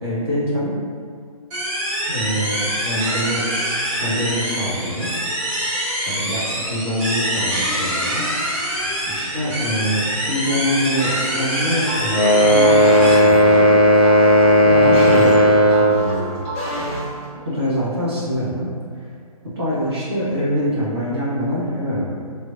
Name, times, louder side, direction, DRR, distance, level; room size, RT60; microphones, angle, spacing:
voice 1, 0.0-0.7 2.1-3.5 3.9-5.1 6.1-8.2 9.1-13.6 14.6-16.4 17.4-19.1 19.5-22.2, equal, 45° right, -8 dB, 0.9 m, -24 dB
sound 1, 1.5-13.1, equal, 20° right, 0.7 m, -25 dB
sound 2, 11.8-17.3, equal, 10° left, 0.9 m, -28 dB
sound 3, 12.1-16.0, equal, 90° left, 0.4 m, -13 dB
3.2 x 2.1 x 2.4 m, 2.1 s
figure-of-eight pair, 140°, 19 cm